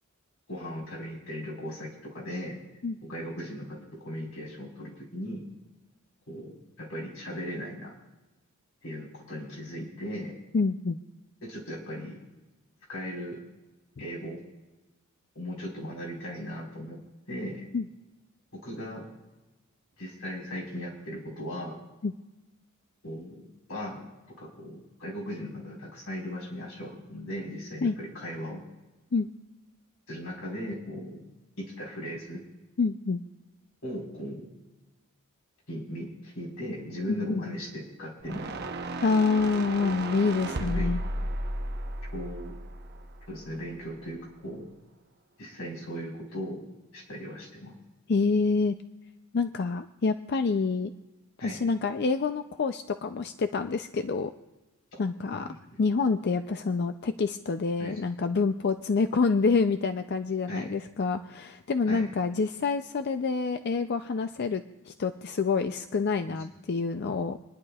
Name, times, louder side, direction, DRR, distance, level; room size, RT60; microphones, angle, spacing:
voice 1, 0.5-2.6 3.0-5.5 6.3-7.9 8.8-10.3 11.4-12.2 12.9-13.4 14.0-14.4 15.3-17.0 17.3-17.7 18.5-19.1 20.0-21.8 23.0-24.1 24.4-28.6 30.1-31.3 31.6-32.4 33.8-34.5 35.7-38.5 40.5-41.0 42.1-42.5 43.3-44.7 45.4-46.6 46.9-47.8 51.4-51.6 55.3-55.8 57.8-58.0 60.5-60.7 61.9-62.1 66.3-66.4, equal, 85° left, -2 dB, 4.5 m, -38 dB
voice 2, 10.5-11.0 17.7-17.9 22.0-22.1 27.8-27.9 29.1-29.3 32.8-33.2 37.1-37.4 39.0-41.0 48.1-48.8 49.3-50.9 51.4-54.3 55.0-67.4, left 4 dB, 50° left, 8 dB, 0.4 m, -27 dB
sound 1, 38.2-43.5, right 1 dB, 50° right, 0.8 m, -34 dB
28.5 x 10.5 x 2.4 m, 1.1 s
head